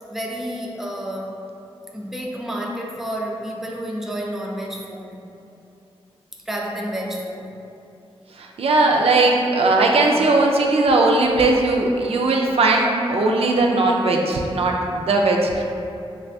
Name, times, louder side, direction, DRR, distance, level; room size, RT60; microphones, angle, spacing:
voice 1, 0.1-1.4 1.9-5.3 6.5-7.6, equal, 5° right, -2 dB, 0.4 m, -30 dB
voice 2, 8.4-15.6, right 2 dB, 70° right, 0 dB, 0.4 m, -18 dB
3.3 x 3.1 x 2.6 m, 2.6 s
wide cardioid pair, 105°, 10 cm